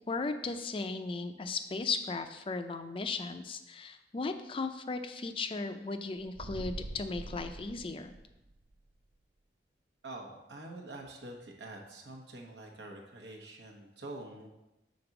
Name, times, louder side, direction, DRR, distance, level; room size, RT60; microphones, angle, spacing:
voice 1, 0.1-8.1, left 4 dB, 30° left, 9 dB, 0.4 m, -36 dB
sound 1, 6.2-8.7, right 2 dB, 35° right, 0.4 m, -43 dB
voice 2, 10.0-14.5, right 2 dB, 85° right, 1 dB, 1.0 m, -46 dB
5.2 x 4.0 x 5.8 m, 0.94 s
head